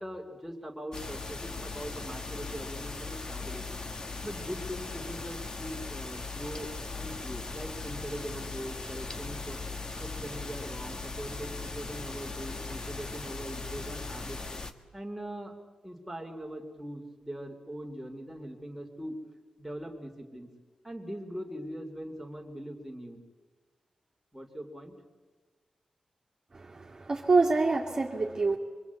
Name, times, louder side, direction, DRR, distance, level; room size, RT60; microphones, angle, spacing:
voice 1, 0.0-3.8 4.2-9.6 10.0-14.4 14.9-15.5 15.8-19.2 19.6-20.5 20.8-23.2 24.3-24.9, equal, ahead, 0 dB, 3.0 m, -41 dB
sound 1, 0.9-14.7, left 3 dB, 35° left, 1.4 m, -39 dB
voice 2, 26.5-28.6, right 3 dB, 30° right, -1 dB, 2.1 m, -26 dB
24.5 x 24.5 x 8.3 m, 1.3 s
wide cardioid pair, 155°, 2 cm